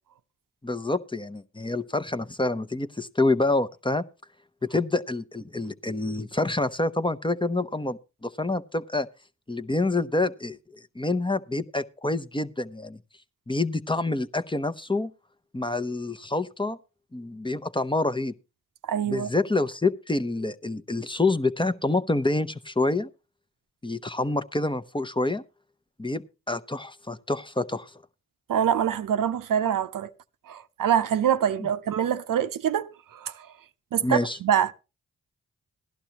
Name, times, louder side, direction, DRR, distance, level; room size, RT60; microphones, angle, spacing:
voice 1, 0.6-4.0 4.6-9.1 9.5-10.6 10.9-13.0 13.5-15.1 15.5-16.8 17.1-18.3 19.1-23.1 23.8-25.4 26.0-27.9 34.0-34.4, left 2 dB, 15° left, 0.7 m, -27 dB
voice 2, 18.8-19.3 28.5-30.1 30.5-33.5 33.9-34.7, right 9 dB, 75° right, 0.7 m, -25 dB
16.5 x 11.5 x 2.9 m
cardioid pair, 45°, 33 cm